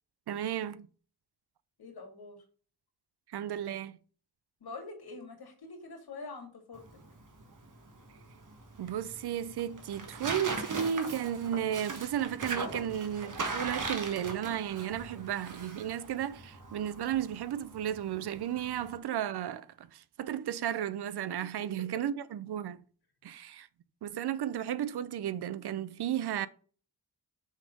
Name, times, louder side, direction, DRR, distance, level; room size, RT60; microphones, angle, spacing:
voice 1, 0.3-0.9 3.3-4.0 8.8-22.8 23.2-23.7 24.0-26.5, right 10 dB, 85° right, 0.6 m, -34 dB
voice 2, 1.8-2.4 4.6-6.8 18.6-18.7 21.4-21.5, left 3 dB, 75° left, 2.2 m, -45 dB
Tearing, 6.7-19.0, right 3 dB, 55° right, 1.3 m, -40 dB
6.4 x 3.6 x 5.2 m
wide cardioid pair, 90°, 38 cm